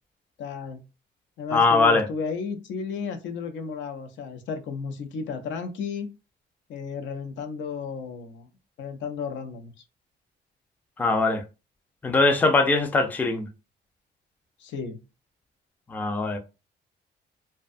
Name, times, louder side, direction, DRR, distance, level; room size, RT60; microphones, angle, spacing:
voice 1, 0.4-0.8 1.4-6.1 6.7-8.5 8.8-9.7 14.6-15.0, left 5 dB, 80° left, 0.5 m, -33 dB
voice 2, 1.5-2.1 11.0-11.4 12.0-13.5 15.9-16.4, left 3 dB, 10° left, 0.3 m, -21 dB
2.6 x 2.2 x 2.4 m
cardioid pair, 125°, 19 cm